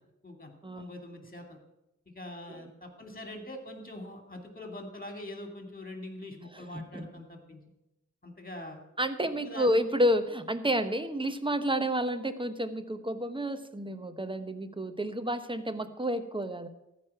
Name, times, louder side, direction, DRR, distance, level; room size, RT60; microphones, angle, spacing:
voice 1, 0.2-1.6 2.1-7.6 8.2-8.8 9.3-9.8, left 1 dB, 30° left, 4 dB, 2.7 m, -43 dB
voice 2, 9.0-16.7, equal, 15° right, 10 dB, 1.0 m, -30 dB
14.5 x 5.2 x 8.8 m, 0.91 s
wide cardioid pair, 55°, 29 cm